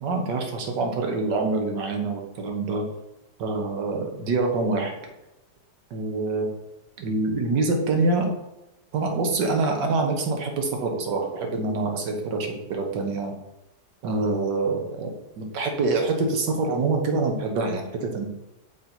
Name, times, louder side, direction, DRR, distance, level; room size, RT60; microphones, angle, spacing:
voice 1, 0.0-2.8 3.4-4.9 5.9-6.5 7.0-8.3 8.9-13.3 14.0-15.1 15.4-18.3, right 3 dB, 90° right, 2 dB, 1.7 m, -25 dB
6.1 x 4.0 x 4.4 m, 0.93 s
omnidirectional pair, 1.8 m